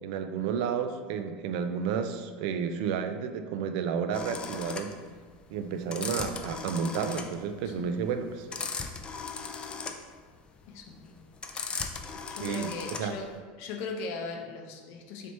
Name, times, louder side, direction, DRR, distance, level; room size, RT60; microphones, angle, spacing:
voice 1, 0.0-4.9 5.5-8.5 12.4-13.1, right 6 dB, 70° right, 8 dB, 0.3 m, -31 dB
sound 1, 4.1-13.3, left 5 dB, 20° left, 0.3 m, -37 dB
voice 2, 10.7-11.1 12.3-13.3 13.6-15.3, left 4 dB, 60° left, 2 dB, 0.6 m, -38 dB
3.3 x 3.0 x 4.1 m, 1.5 s
supercardioid pair, 130°, 5 cm